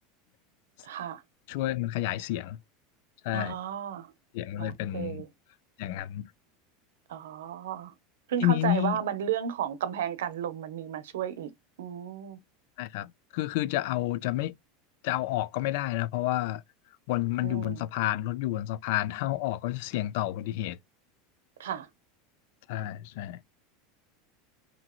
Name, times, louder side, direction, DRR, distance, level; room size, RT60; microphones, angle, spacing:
voice 1, 0.8-1.2 3.3-4.1 4.6-5.3 7.1-7.9 8.3-11.5 11.8-12.4 17.4-17.9 21.6-21.9, right 9 dB, 90° right, 0.6 m, -33 dB
voice 2, 1.5-2.6 3.2-3.6 4.3-5.2 5.8-6.3 8.4-9.0 12.8-14.5 15.0-16.6 17.1-20.8 22.7-23.4, left 14 dB, 70° left, 0.4 m, -30 dB
2.9 x 2.7 x 2.3 m
supercardioid pair, 120°, 0 cm